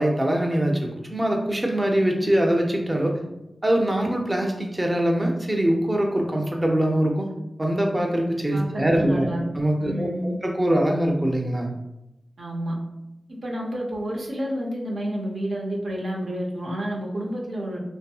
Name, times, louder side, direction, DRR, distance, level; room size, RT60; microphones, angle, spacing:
voice 1, 0.0-3.2 3.6-7.3 7.6-11.7, right 1 dB, 20° right, 1 dB, 0.5 m, -23 dB
voice 2, 8.5-9.4 9.8-10.4 12.4-12.8 13.3-17.8, equal, 85° right, -2 dB, 0.6 m, -30 dB
2.6 x 2.5 x 2.3 m, 0.90 s
cardioid pair, 50°, 0 cm